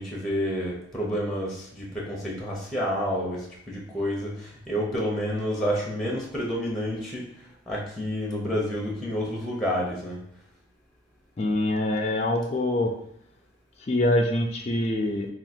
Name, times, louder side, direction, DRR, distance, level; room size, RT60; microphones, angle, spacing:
voice 1, 0.0-7.3 7.7-10.2, equal, ahead, -3 dB, 0.8 m, -29 dB
voice 2, 11.4-12.9 13.9-15.3, left 1 dB, 30° left, 2 dB, 0.4 m, -24 dB
3.6 x 2.4 x 4.3 m, 0.67 s
head